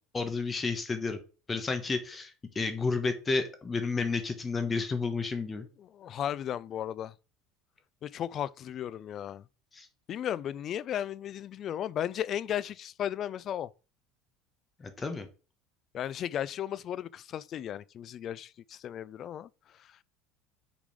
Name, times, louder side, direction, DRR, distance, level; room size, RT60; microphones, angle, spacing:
voice 1, 0.1-1.2 1.5-5.7 9.7-9.9 14.8-15.3, left 4 dB, 20° left, 1.3 m, -31 dB
voice 2, 5.8-7.1 8.0-9.4 10.1-13.7 15.9-19.5 19.8-19.9, left 10 dB, 40° left, 0.4 m, -35 dB
5.2 x 5.0 x 5.1 m
supercardioid pair, 115°, 0 cm